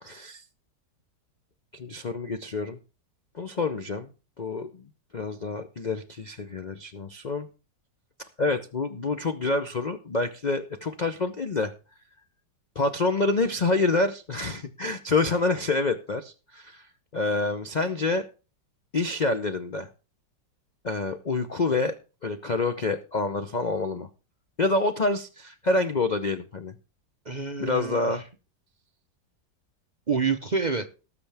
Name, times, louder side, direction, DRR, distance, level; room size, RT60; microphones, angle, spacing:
voice 1, 0.0-0.4 1.7-2.8 3.3-4.1 4.4-4.8 5.1-7.5 8.4-11.7 12.8-16.9 17.1-18.2 18.9-19.9 20.8-22.0 22.2-24.1 24.6-26.7 27.6-28.2, left 3 dB, 85° left, 8 dB, 0.4 m, -27 dB
voice 2, 27.2-28.2 30.1-30.9, right 5 dB, 45° right, 7 dB, 0.6 m, -28 dB
19.0 x 6.9 x 3.4 m, 0.34 s
omnidirectional pair, 2.0 m